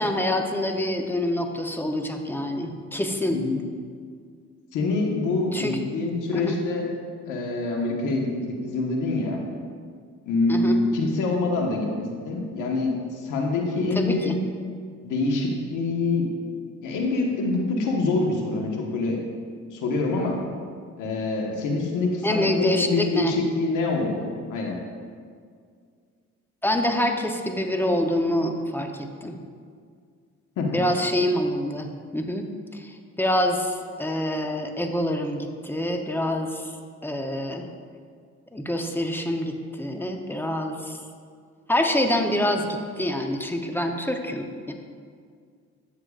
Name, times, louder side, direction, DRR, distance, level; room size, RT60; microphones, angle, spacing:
voice 1, 0.0-3.4 5.5-5.8 6.3-6.6 10.5-10.8 13.9-14.4 22.2-23.4 26.6-29.4 30.7-36.7 37.0-37.7 38.5-41.0 41.7-44.7, left 1 dB, 5° left, 4 dB, 0.7 m, -26 dB
voice 2, 4.7-6.9 7.3-9.4 10.2-14.3 15.0-16.3 16.8-19.2 19.7-20.4 21.0-24.8 30.6-30.8, left 3 dB, 85° left, 0 dB, 1.3 m, -25 dB
13.0 x 6.7 x 2.4 m, 2.1 s
cardioid pair, 90°, 30 cm